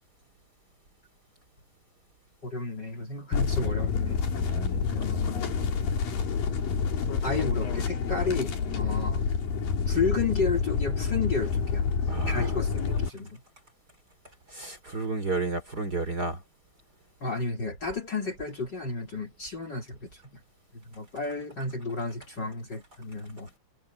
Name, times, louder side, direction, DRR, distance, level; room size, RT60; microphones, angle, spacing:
voice 1, 2.4-4.3 4.7-5.6 7.2-9.2 9.9-11.9 12.2-13.4 17.2-20.4 20.7-23.5, left 4 dB, 30° left, 3.4 m, -32 dB
sound 1, 3.3-13.1, left 6 dB, 75° left, 4.8 m, -28 dB
voice 2, 4.4-4.9 8.8-9.0 12.1-12.5 14.5-16.4, right 3 dB, 30° right, 3.4 m, -32 dB
omnidirectional pair, 4.0 m